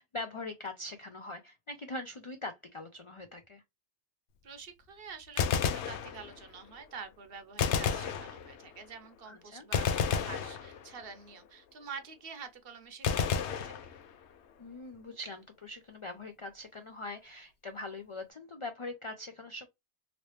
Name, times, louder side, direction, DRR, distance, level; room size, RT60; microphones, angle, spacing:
voice 1, 0.0-3.6 9.3-9.7 14.6-19.7, left 2 dB, 55° left, 0.3 m, -42 dB
voice 2, 4.4-14.0, right 5 dB, 60° right, 0.9 m, -47 dB
Gunshot gunfire, 5.2-6.6 7.6-8.8 9.7-11.2 13.0-14.4, left 7 dB, 80° left, 0.9 m, -32 dB
3.0 x 2.7 x 3.1 m
omnidirectional pair, 1.1 m